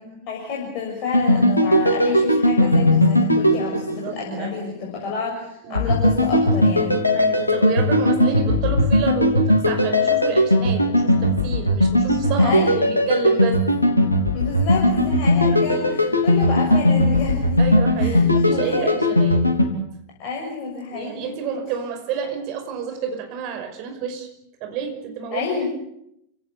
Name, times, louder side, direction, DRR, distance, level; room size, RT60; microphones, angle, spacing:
voice 1, 0.0-7.0 12.4-12.7 14.3-17.6 18.0-18.2 18.5-19.0 20.2-21.3 25.3-25.7, left 4 dB, 40° left, -2 dB, 6.6 m, -29 dB
sound 1, 1.1-4.5 5.7-19.6, left 1 dB, 85° left, 3.2 m, -18 dB
voice 2, 3.7-5.2 5.6-5.9 7.1-13.6 14.0-14.1 15.2-15.7 16.1-16.2 17.6-19.4 20.9-24.3 24.6-25.5, right 6 dB, 40° right, 5 dB, 5.6 m, -30 dB
29.0 x 17.5 x 8.3 m, 0.78 s
figure-of-eight pair, 90°, 0 cm